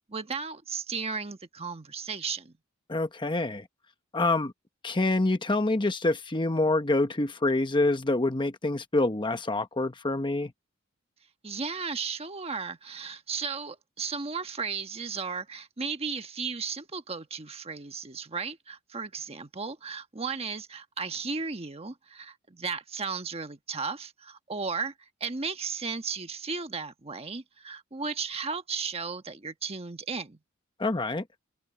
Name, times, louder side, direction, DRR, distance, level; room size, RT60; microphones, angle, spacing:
voice 1, 0.1-2.6 11.4-24.9 25.2-30.4, right 5 dB, 30° right, 1.3 m, -35 dB
voice 2, 2.9-3.7 4.1-4.5 4.8-10.5 30.8-31.2, left 2 dB, 25° left, 0.9 m, -26 dB
open air
head